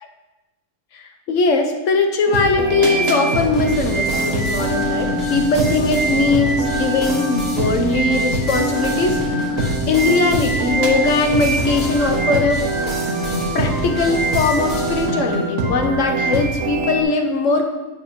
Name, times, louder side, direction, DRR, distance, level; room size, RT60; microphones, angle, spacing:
voice 1, 0.9-12.6 13.5-17.6, left 3 dB, 70° left, 3 dB, 1.2 m, -20 dB
sound 1, 2.3-17.0, right 2 dB, 85° right, 1.4 m, -22 dB
sound 2, 3.4-15.1, equal, 35° left, 2.0 m, -31 dB
8.5 x 7.7 x 2.8 m, 1.1 s
omnidirectional pair, 1.3 m